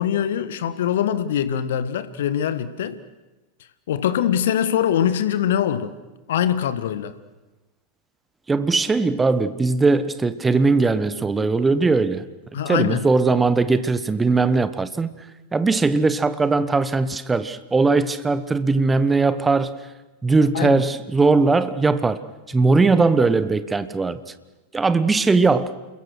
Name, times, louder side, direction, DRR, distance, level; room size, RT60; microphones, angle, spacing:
voice 1, 0.0-3.0 3.9-5.9 6.3-7.1 12.5-13.1 20.5-20.8, left 10 dB, 60° left, 1.3 m, -23 dB
voice 2, 8.5-12.3 12.7-15.1 15.5-19.7 20.2-22.2 22.5-24.2 24.7-25.7, right 3 dB, 10° right, 1.1 m, -19 dB
29.0 x 21.5 x 6.4 m
figure-of-eight pair, 90°, 0 cm